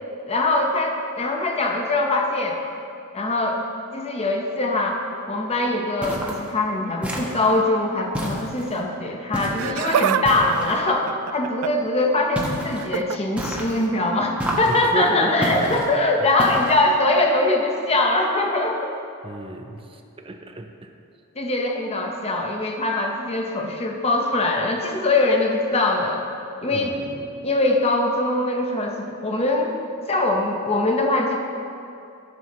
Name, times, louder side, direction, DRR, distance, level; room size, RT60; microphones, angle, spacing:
voice 1, 0.3-2.6 3.1-3.6 3.9-5.0 5.3-18.8 21.4-26.2 26.6-27.0 27.4-29.8 30.1-31.4, left 2 dB, 30° left, 1 dB, 0.9 m, -22 dB
sound 1, 6.0-6.5 7.0-7.6 8.1-8.8 9.3-9.7 10.2-10.8 12.3-12.8 13.4-13.9 14.4-14.9 15.4-15.9 16.4-16.9, equal, 5° right, 1.2 m, -30 dB
Laughter, 9.4-10.2 10.5-11.9 12.8-13.2 14.5-14.7 15.6-15.7, right 9 dB, 75° right, 0.3 m, -26 dB
voice 2, 14.7-15.8 16.2-16.3 19.2-20.9 26.7-27.4, right 2 dB, 25° right, 4 dB, 0.7 m, -32 dB
16.0 x 6.3 x 3.1 m, 2.6 s
head